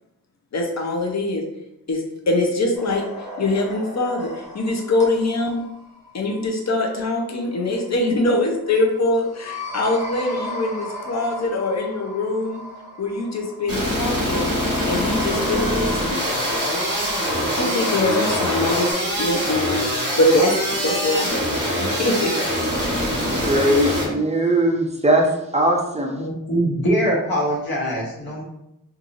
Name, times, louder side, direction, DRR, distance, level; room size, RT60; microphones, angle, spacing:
voice 1, 0.5-1.4 1.9-3.1 3.4-5.6 6.1-12.6 13.0-14.5 14.8-16.2 17.6-21.5 21.8-22.3, left 2 dB, 50° left, 0.7 m, -23 dB
sound 1, 2.7-18.9, left 1 dB, 20° left, 0.9 m, -34 dB
sound 2, 13.7-24.1, equal, 40° right, 1.1 m, -24 dB
voice 2, 23.4-25.3 25.5-26.2, right 1 dB, 20° right, 0.5 m, -19 dB
voice 3, 26.1-28.4, equal, 80° left, 1.1 m, -23 dB
2.9 x 2.6 x 2.6 m
wide cardioid pair, 75°, 36 cm